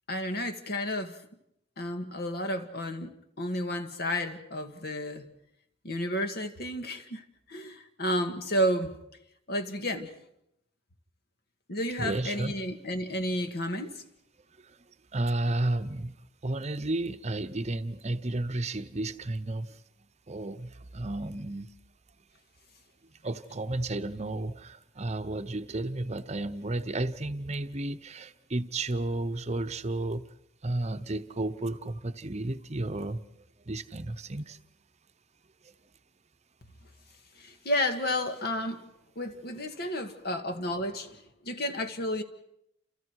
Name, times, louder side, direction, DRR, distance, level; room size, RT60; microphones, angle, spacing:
voice 1, 0.1-1.2 1.8-5.3 5.8-9.0 9.5-10.1 11.7-14.0 37.4-38.8 39.2-42.2, equal, 55° left, 2.0 m, -31 dB
voice 2, 12.0-12.5 14.6-14.8 15.1-16.1 16.4-19.8 20.3-21.7 23.2-30.2 30.6-33.2 33.7-34.6 35.6-35.7, right 2 dB, 35° right, 0.9 m, -32 dB
30.0 x 28.0 x 4.8 m
head